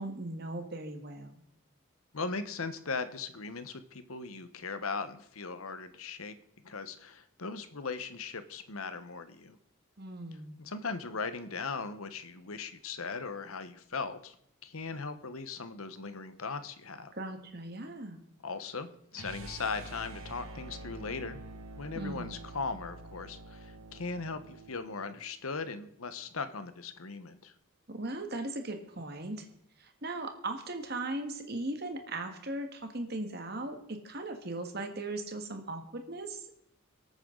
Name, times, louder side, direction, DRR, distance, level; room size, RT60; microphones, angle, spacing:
voice 1, 0.0-1.4 10.0-10.6 17.1-18.2 22.0-22.3 27.9-29.5 29.8-36.6, right 2 dB, 50° right, 6 dB, 1.7 m, -38 dB
voice 2, 2.1-6.3 6.6-9.6 10.6-14.3 14.6-17.1 18.4-21.4 21.7-27.5, left 4 dB, 80° left, 11 dB, 1.1 m, -38 dB
sound 1, 19.1-25.2, right 2 dB, 80° right, 1.7 m, -47 dB
23.5 x 9.1 x 3.9 m, 0.73 s
head